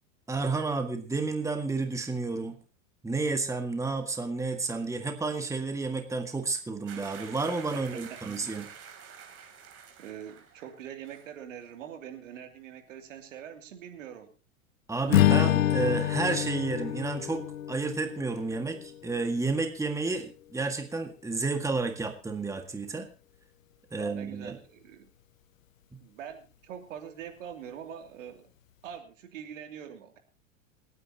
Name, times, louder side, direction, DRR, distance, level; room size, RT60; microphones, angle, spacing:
voice 1, 0.3-2.6 3.0-8.7 14.9-23.1 23.9-24.6 25.9-26.0, right 3 dB, 10° right, 5 dB, 1.9 m, -31 dB
sound 1, 6.9-10.8 11.0-11.3, right 7 dB, 35° right, 3.5 m, -48 dB
voice 2, 7.7-8.2 10.0-14.3 18.6-19.0 23.9-25.1 26.0-28.5 28.8-30.2, right 9 dB, 70° right, 5 dB, 2.9 m, -44 dB
Strum, 15.1-19.5, left 12 dB, 75° left, 0.9 m, -27 dB
27.5 x 9.7 x 2.9 m, 0.35 s
hypercardioid pair, 100°, 40 cm